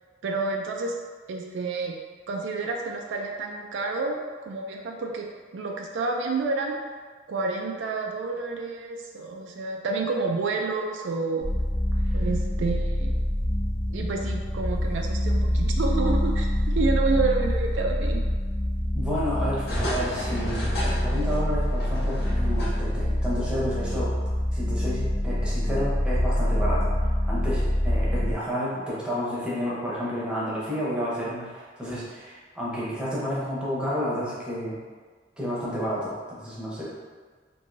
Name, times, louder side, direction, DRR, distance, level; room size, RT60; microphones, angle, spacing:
voice 1, 0.2-0.9 1.3-1.9 2.3-5.3 5.5-6.8 7.3-11.5 12.1-13.2 13.9-18.2, right 3 dB, 85° right, 1 dB, 0.4 m, -29 dB
sound 1, 11.4-28.3, left 1 dB, 85° left, 0.6 m, -25 dB
voice 2, 18.9-24.1 24.5-26.9 27.2-34.8 35.4-36.9, equal, 5° right, -8 dB, 0.7 m, -31 dB
sound 2, 19.6-23.1 23.4-23.5, equal, 60° left, 0.9 m, -33 dB
3.1 x 2.6 x 2.6 m, 1.5 s
head